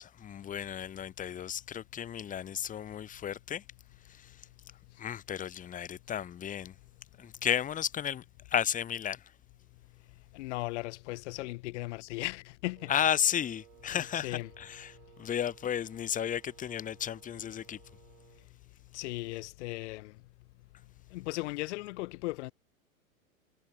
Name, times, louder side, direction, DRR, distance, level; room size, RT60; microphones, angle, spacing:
voice 1, 0.0-3.6 4.1-4.4 5.0-6.7 7.2-9.2 12.9-17.8, left 9 dB, 20° left, 1.1 m, -33 dB
voice 2, 10.3-12.9 14.1-14.5 18.9-20.1 21.1-22.5, left 21 dB, 55° left, 2.6 m, -37 dB
Wind instrument woodwind instrument, 12.7-18.5, right 18 dB, 60° right, 3.4 m, -59 dB
hypercardioid pair, 105°, 42 cm